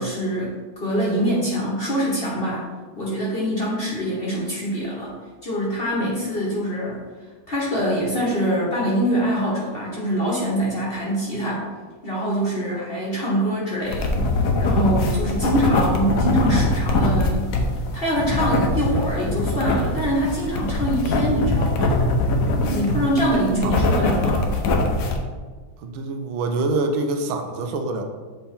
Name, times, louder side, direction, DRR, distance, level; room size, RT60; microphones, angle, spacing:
voice 1, 0.0-2.7 3.0-5.1 5.4-7.0 7.5-11.7 12.0-14.2 14.6-17.5 17.9-22.0 22.6-24.5, equal, 35° left, -5 dB, 1.1 m, -24 dB
sound 1, 13.8-25.2, left 2 dB, 65° left, 0.9 m, -22 dB
voice 2, 25.8-28.0, right 3 dB, 75° right, 5 dB, 1.4 m, -25 dB
7.9 x 3.5 x 4.2 m, 1.4 s
omnidirectional pair, 2.2 m